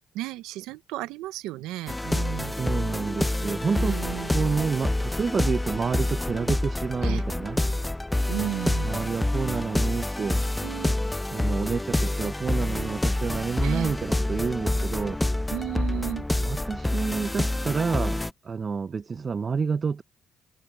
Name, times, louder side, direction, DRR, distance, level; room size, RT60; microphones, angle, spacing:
voice 1, 0.1-2.6 3.7-4.3 7.0-7.2 8.3-9.0 10.6-11.0 13.6-13.9 15.5-16.3, right 15 dB, 85° right, 0.7 m, -33 dB
sound 1, 1.9-18.3, left 1 dB, 10° left, 0.5 m, -27 dB
voice 2, 2.5-4.0 4.3-7.6 8.8-10.4 11.3-15.2 16.4-20.0, right 5 dB, 40° right, 0.8 m, -29 dB
supercardioid pair, 65°, 0 cm